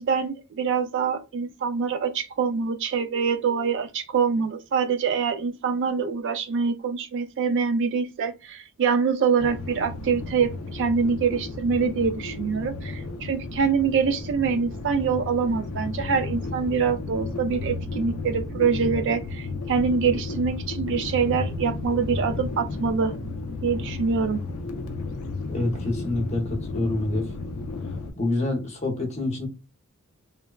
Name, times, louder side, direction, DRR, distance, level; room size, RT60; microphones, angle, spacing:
voice 1, 0.0-23.1 23.6-24.4, right 5 dB, 55° right, 0.3 m, -25 dB
sound 1, 9.4-28.1, left 3 dB, 70° left, 0.5 m, -33 dB
voice 2, 25.5-27.3 28.1-29.5, left 2 dB, 30° left, 0.8 m, -27 dB
3.1 x 2.0 x 2.3 m
head